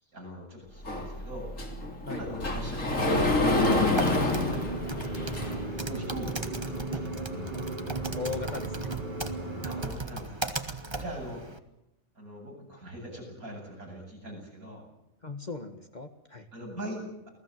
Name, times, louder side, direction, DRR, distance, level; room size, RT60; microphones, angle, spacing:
voice 1, 0.1-1.5 2.1-7.7 9.6-10.5 11.0-11.4 12.2-14.8 16.5-17.3, equal, 90° right, 1 dB, 8.7 m, -42 dB
Sliding door, 0.8-5.8, left 2 dB, 65° left, 3.8 m, -28 dB
Typing, 3.4-11.6, right 3 dB, 20° right, 1.6 m, -37 dB
sound 1, 4.0-9.9, right 2 dB, 35° right, 3.1 m, -36 dB
voice 2, 8.1-8.9 10.9-11.0 15.2-16.5, left 4 dB, 30° left, 6 dB, 1.8 m, -38 dB
29.0 x 18.0 x 7.8 m, 0.87 s
omnidirectional pair, 1.5 m